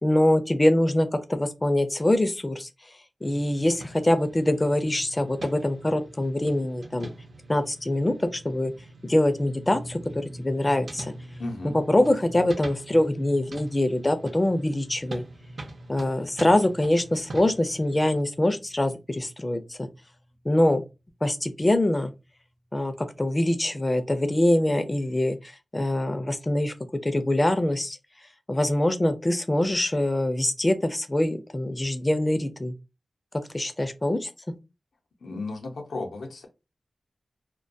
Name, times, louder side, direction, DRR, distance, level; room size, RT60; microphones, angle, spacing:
voice 1, 0.0-2.7 3.2-7.1 7.5-8.7 9.1-11.1 11.6-15.2 15.9-19.9 20.4-20.8 21.2-22.1 22.7-26.7 27.0-28.0 28.5-32.7 33.5-34.3, left 1 dB, 25° left, 9 dB, 0.4 m, -24 dB
sound 1, 3.2-18.2, right 2 dB, 65° right, 0.5 m, -44 dB
sound 2, 9.7-21.9 22.2-22.4 24.1-24.2, equal, 85° right, 0.8 m, -47 dB
voice 2, 11.4-11.8 35.2-36.5, left 2 dB, 85° left, 3 dB, 0.6 m, -34 dB
2.2 x 2.2 x 2.5 m, 0.26 s
wide cardioid pair, 75°, 0 cm